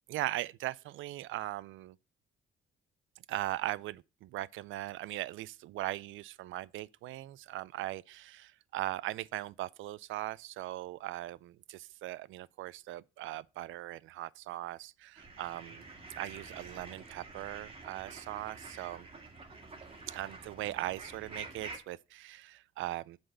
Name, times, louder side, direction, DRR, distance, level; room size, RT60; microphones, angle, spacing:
voice 1, 0.1-2.0 3.3-15.8 16.2-19.1 20.1-23.2, right 15 dB, 80° right, 0.4 m, -39 dB
sound 1, 15.2-21.8, right 3 dB, 30° right, 2.0 m, -48 dB
7.8 x 4.1 x 6.6 m
cardioid pair, 90°, 20 cm